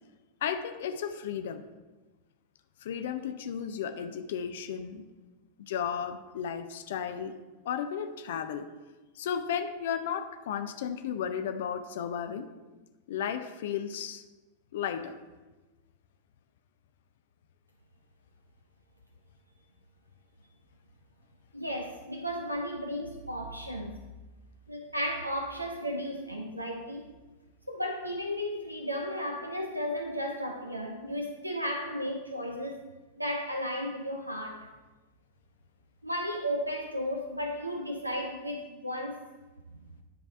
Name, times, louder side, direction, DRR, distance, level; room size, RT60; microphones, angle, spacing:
voice 1, 0.4-1.6 2.8-5.1 5.6-7.4 7.6-8.7 9.2-12.5 13.1-14.2 14.7-15.2, left 8 dB, 55° left, 9 dB, 0.5 m, -34 dB
voice 2, 21.5-23.9 24.7-27.1 27.7-32.8 33.2-34.7 36.0-39.2, equal, 85° right, 3 dB, 0.5 m, -34 dB
10.0 x 3.3 x 5.6 m, 1.2 s
figure-of-eight pair, 90°, 0 cm